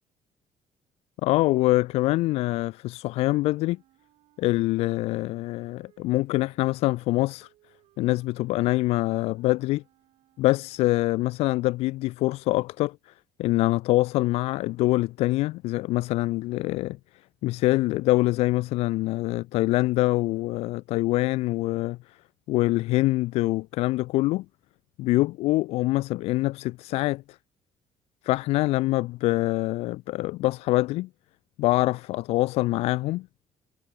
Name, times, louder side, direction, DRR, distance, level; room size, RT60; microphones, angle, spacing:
voice 1, 1.2-3.8 4.4-7.5 8.0-9.8 10.4-13.1 13.4-17.0 17.4-22.2 22.5-24.5 25.0-27.4 28.2-31.1 31.6-33.3, left 19 dB, 90° left, 0.4 m, -25 dB
Wind instrument woodwind instrument, 3.5-11.2, right 15 dB, 75° right, 6.1 m, -64 dB
cardioid pair, 180°, 10 cm